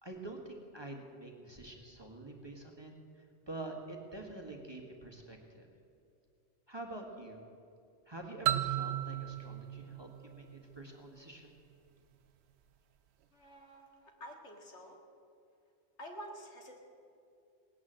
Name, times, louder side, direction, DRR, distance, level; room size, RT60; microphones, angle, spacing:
voice 1, 0.0-5.7 6.7-7.4 8.1-11.5, right 2 dB, 20° right, 1 dB, 1.6 m, -47 dB
sound 1, 8.5-11.2, right 12 dB, 70° right, 0.8 m, -35 dB
voice 2, 13.3-15.0 16.0-16.8, equal, 75° left, 1 dB, 2.3 m, -49 dB
18.5 x 9.4 x 7.6 m, 2.6 s
omnidirectional pair, 1.2 m